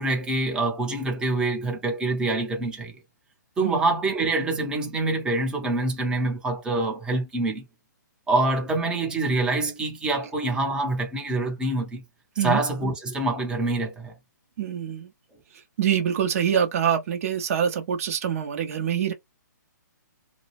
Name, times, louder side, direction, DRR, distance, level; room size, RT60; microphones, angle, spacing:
voice 1, 0.0-2.9 3.6-7.7 8.3-12.0 12.4-14.1, right 2 dB, 10° right, 0.7 m, -25 dB
voice 2, 14.6-15.1 15.8-19.1, right 8 dB, 50° right, 0.6 m, -25 dB
2.2 x 2.0 x 3.0 m
hypercardioid pair, 140°, 10 cm